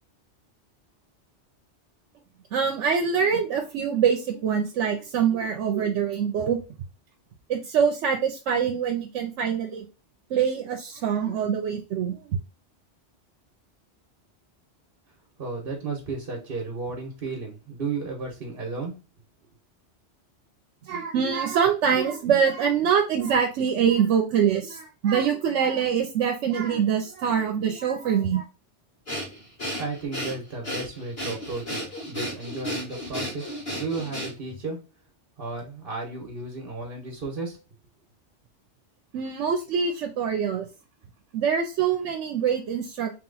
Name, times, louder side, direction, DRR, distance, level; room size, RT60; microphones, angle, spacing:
voice 1, 2.5-6.6 7.5-9.9 10.3-12.4 20.9-28.4 39.1-40.7 41.3-43.1, right 7 dB, 80° right, 3 dB, 0.9 m, -24 dB
voice 2, 15.4-18.9 29.8-34.8 35.4-37.6, right 3 dB, 50° right, -2 dB, 1.1 m, -33 dB
Breathing, 29.1-34.6, equal, 45° left, 1.8 m, -33 dB
3.3 x 2.9 x 3.8 m, 0.31 s
omnidirectional pair, 1.2 m